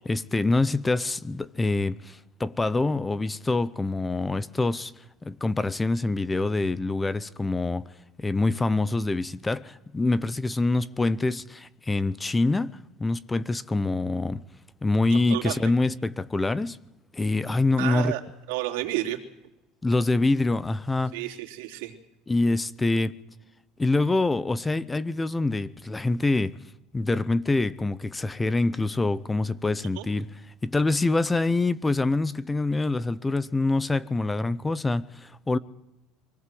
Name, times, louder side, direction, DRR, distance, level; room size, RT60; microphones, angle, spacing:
voice 1, 0.0-4.9 5.2-7.9 8.2-12.7 13.0-14.4 14.8-16.8 17.1-18.1 19.8-21.1 22.3-23.1 23.8-26.6 26.9-30.3 30.6-35.6, left 2 dB, 10° left, 0.7 m, -25 dB
voice 2, 17.8-18.2 18.5-19.2 21.1-21.9 30.0-30.1, right 16 dB, 85° right, 3.5 m, -30 dB
24.0 x 18.0 x 7.8 m
cardioid pair, 140°, 0 cm